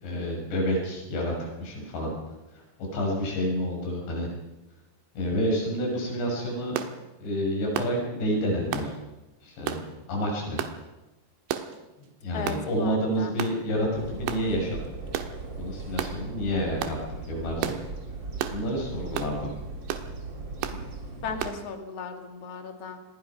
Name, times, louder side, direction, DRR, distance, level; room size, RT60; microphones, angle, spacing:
voice 1, 0.0-2.1 2.5-4.3 5.1-6.8 7.2-8.9 9.4-10.6 12.2-13.9 14.1-14.8 15.6-17.0 17.3-17.7 18.5-19.5 20.7-20.8, equal, 70° left, -1 dB, 8.4 m, -29 dB
sound 1, 6.8-6.9 7.8-8.0 8.7-8.9 9.7-9.9 10.6-10.8 11.5-11.8 12.5-12.6 13.4-13.6 14.3-14.5 15.1-15.3 16.0-16.2 16.8-17.0 17.6-17.8 18.4-18.6 19.2-19.3 19.9-20.1 20.6-20.8 21.4-21.6, right 10 dB, 85° right, 3.7 m, -31 dB
voice 2, 12.3-13.3 21.2-23.0, left 5 dB, 40° left, 5 dB, 2.9 m, -36 dB
sound 2, 13.9-21.5, right 3 dB, 30° right, 2.5 m, -39 dB
26.5 x 20.5 x 5.9 m, 1.0 s
omnidirectional pair, 5.1 m